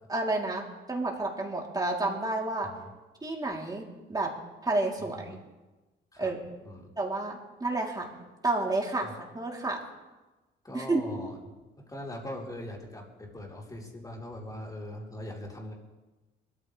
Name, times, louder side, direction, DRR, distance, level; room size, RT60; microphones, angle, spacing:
voice 1, 0.1-2.7 3.2-4.3 4.6-5.4 6.2-6.4 7.0-8.1 8.4-9.8 10.7-11.0, right 2 dB, 20° right, -2 dB, 3.8 m, -30 dB
voice 2, 5.0-5.4 6.1-6.3 6.6-6.9 9.0-9.1 10.6-11.3 11.8-15.7, left 1 dB, 20° left, -2 dB, 4.4 m, -41 dB
22.0 x 14.0 x 3.6 m, 1.1 s
cardioid pair, 90°, 20 cm